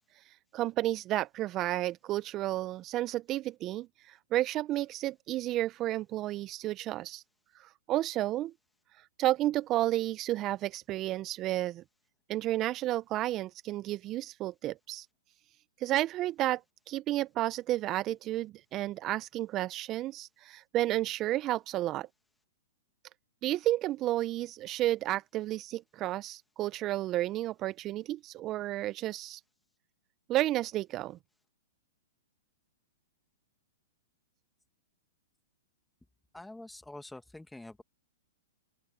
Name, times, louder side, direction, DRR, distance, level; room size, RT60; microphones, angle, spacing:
voice 1, 0.2-7.2 7.5-8.5 9.0-11.8 12.3-15.1 15.8-16.6 16.9-22.1 23.4-29.4 30.3-31.2, right 15 dB, 35° right, 0.7 m, -32 dB
voice 2, 36.3-37.8, left 2 dB, 5° left, 2.0 m, -46 dB
open air
hypercardioid pair, 115°, 0 cm